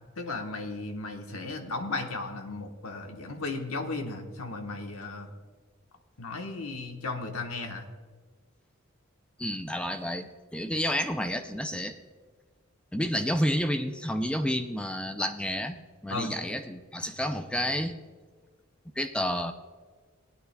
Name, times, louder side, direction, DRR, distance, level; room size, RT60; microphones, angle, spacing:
voice 1, 0.2-5.3 6.2-7.8 16.1-16.3, left 3 dB, 90° left, 4 dB, 1.2 m, -35 dB
voice 2, 9.4-12.0 12.9-15.8 16.0-18.0 19.0-19.5, equal, 5° left, 7 dB, 0.3 m, -30 dB
18.5 x 9.2 x 2.2 m, 1.5 s
head